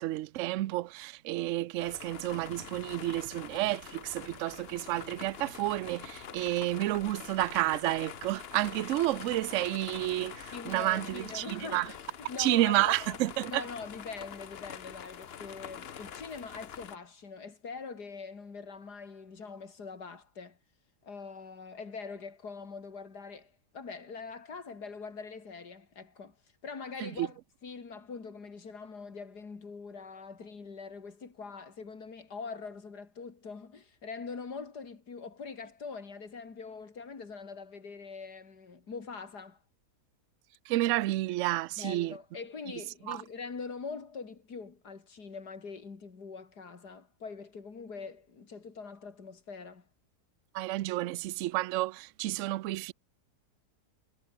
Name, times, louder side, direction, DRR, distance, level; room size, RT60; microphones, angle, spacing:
voice 1, 0.0-11.9 12.4-13.6 27.0-27.3 40.7-42.1 43.1-43.2 50.5-52.9, right 16 dB, 70° right, 0.7 m, -30 dB
sound 1, 1.8-17.0, left 8 dB, 45° left, 0.9 m, -45 dB
voice 2, 10.5-13.2 13.5-20.6 21.0-26.4 26.6-39.6 41.8-49.9, left 5 dB, 80° left, 3.4 m, -43 dB
omnidirectional pair, 1.7 m